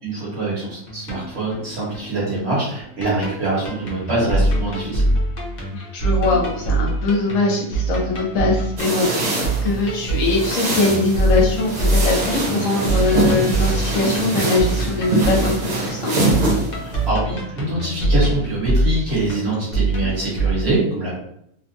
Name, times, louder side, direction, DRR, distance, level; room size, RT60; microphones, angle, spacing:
voice 1, 0.0-5.0 16.7-21.1, right 2 dB, 50° right, -6 dB, 1.1 m, -24 dB
sound 1, 0.9-20.5, right 2 dB, 50° left, 0.5 m, -24 dB
voice 2, 5.7-9.1 9.6-16.3, left 3 dB, 65° left, -1 dB, 1.0 m, -22 dB
sound 2, 8.8-17.1, right 2 dB, 75° right, 0.4 m, -23 dB
2.8 x 2.2 x 2.6 m, 0.74 s
omnidirectional pair, 1.6 m